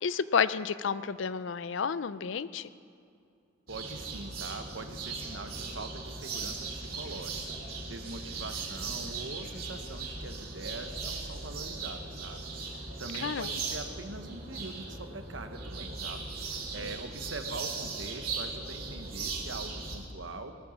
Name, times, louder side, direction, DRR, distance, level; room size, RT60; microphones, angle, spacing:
voice 1, 0.0-2.7 13.2-13.5 16.8-16.9, left 6 dB, 70° left, 15 dB, 0.4 m, -30 dB
sound 1, 3.7-20.0, right 4 dB, 45° right, 2.4 m, -38 dB
voice 2, 3.7-12.4 13.0-16.3 16.7-20.5, right 3 dB, 70° right, 7 dB, 1.1 m, -43 dB
19.0 x 8.9 x 7.1 m, 2.5 s
head